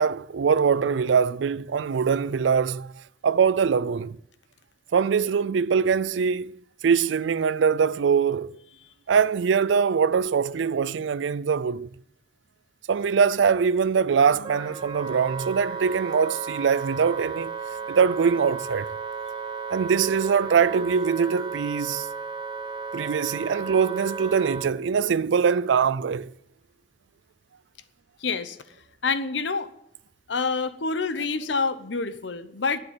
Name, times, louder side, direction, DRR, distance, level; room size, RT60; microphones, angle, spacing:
voice 1, 0.0-2.9 3.2-4.2 4.9-6.5 6.8-8.5 9.1-11.9 12.9-17.5 17.9-18.9 19.7-22.1 22.9-26.3, right 6 dB, 85° right, 0.4 m, -22 dB
Wind instrument woodwind instrument, 14.4-24.7, right 5 dB, 25° right, 1.0 m, -34 dB
voice 2, 28.2-28.6 29.0-29.7 30.3-32.8, left 4 dB, 80° left, 0.9 m, -27 dB
12.0 x 8.9 x 8.8 m
head